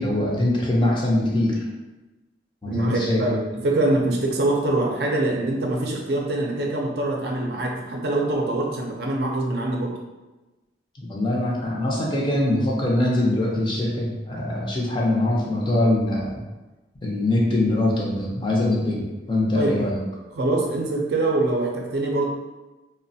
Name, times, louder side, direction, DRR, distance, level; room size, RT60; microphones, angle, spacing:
voice 1, 0.0-1.6 2.6-3.4 11.0-16.4 17.0-20.0, left 1 dB, 25° left, -3 dB, 0.5 m, -23 dB
voice 2, 2.7-9.9 19.5-19.8 20.3-22.2, right 2 dB, 65° right, -1 dB, 0.5 m, -24 dB
3.1 x 2.1 x 2.6 m, 1.1 s
head